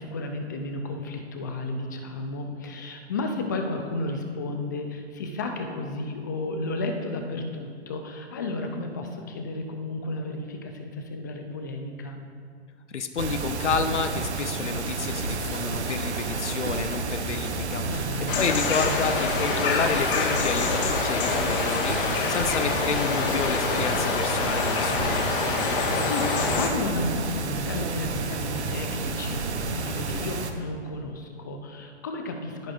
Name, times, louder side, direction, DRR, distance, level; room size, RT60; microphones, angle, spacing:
voice 1, 0.0-12.2 17.8-18.4 22.3-22.7 25.5-32.7, left 2 dB, 20° left, 4 dB, 0.3 m, -33 dB
voice 2, 12.9-18.1 18.4-25.3, left 5 dB, 85° left, 8 dB, 0.7 m, -30 dB
sound 1, 13.2-30.5, right 3 dB, 75° right, 0.9 m, -30 dB
sound 2, 18.3-26.7, left 4 dB, 50° left, 1.3 m, -26 dB
14.5 x 4.8 x 2.3 m, 2.1 s
hypercardioid pair, 135°, 34 cm